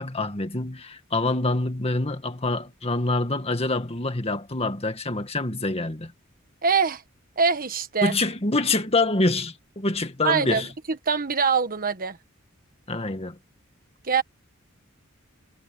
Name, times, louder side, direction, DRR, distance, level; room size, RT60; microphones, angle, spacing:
voice 1, 0.0-6.1 8.0-10.7 12.9-13.4, left 2 dB, 30° left, 2.0 m, -26 dB
voice 2, 6.6-7.0 7.4-8.2 10.2-12.2 14.0-14.2, right 5 dB, 45° right, 1.5 m, -24 dB
head